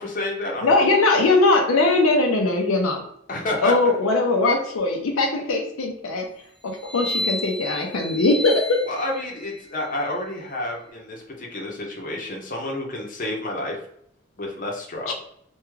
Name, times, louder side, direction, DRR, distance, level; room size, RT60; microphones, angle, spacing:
voice 1, 0.0-0.8 3.3-3.7 8.9-13.8 14.4-15.1, left 1 dB, 40° left, -1 dB, 0.7 m, -29 dB
voice 2, 0.6-3.0 3.6-6.2 6.6-8.8 15.1-15.2, left 2 dB, 80° left, 2 dB, 0.6 m, -20 dB
sound 1, 6.7-10.8, left 1 dB, 5° right, 1.2 m, -33 dB
3.5 x 2.3 x 3.1 m, 0.69 s
head